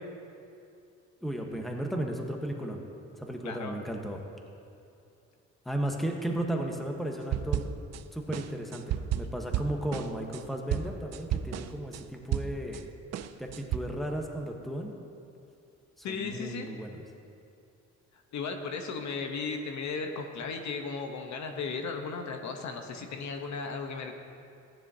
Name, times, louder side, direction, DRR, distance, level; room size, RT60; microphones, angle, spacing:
voice 1, 1.2-2.8 3.2-4.2 5.6-7.7 8.1-12.8 13.4-14.9 16.1-17.0, right 1 dB, ahead, 2 dB, 1.1 m, -34 dB
voice 2, 3.4-3.8 16.0-16.7 18.3-24.1, left 4 dB, 65° left, 5 dB, 1.0 m, -35 dB
sound 1, 7.3-8.0 8.3-12.8 13.1-13.8, right 10 dB, 60° right, 0.5 m, -32 dB
15.0 x 10.0 x 2.8 m, 2.5 s
cardioid pair, 90°, 30 cm